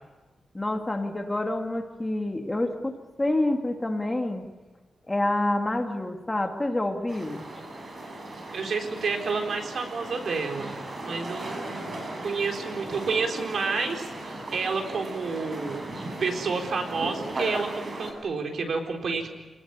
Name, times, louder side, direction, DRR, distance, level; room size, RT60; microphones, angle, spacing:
voice 1, 0.5-2.9 3.2-4.5 5.1-7.4, left 1 dB, 15° left, 4 dB, 2.2 m, -27 dB
sound 1, 7.1-18.1, right 1 dB, 40° right, 6.0 m, -37 dB
voice 2, 8.5-10.7 11.0-15.8 16.2-19.3, right 4 dB, 65° right, 3 dB, 4.0 m, -30 dB
27.5 x 20.0 x 9.6 m, 1.2 s
wide cardioid pair, 150°, 0 cm